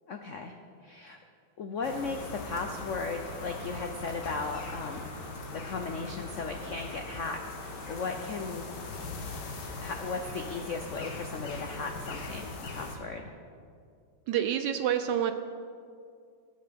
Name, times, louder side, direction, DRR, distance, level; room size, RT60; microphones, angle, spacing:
voice 1, 0.1-0.5 0.8-1.2 1.6-5.1 5.5-8.6 9.8-13.2, left 4 dB, 85° left, 5 dB, 0.6 m, -36 dB
sound 1, 1.8-13.0, left 3 dB, 60° left, 1.8 m, -40 dB
voice 2, 14.3-15.3, right 10 dB, 75° right, 9 dB, 1.0 m, -27 dB
18.5 x 6.7 x 5.2 m, 2.3 s
omnidirectional pair, 2.2 m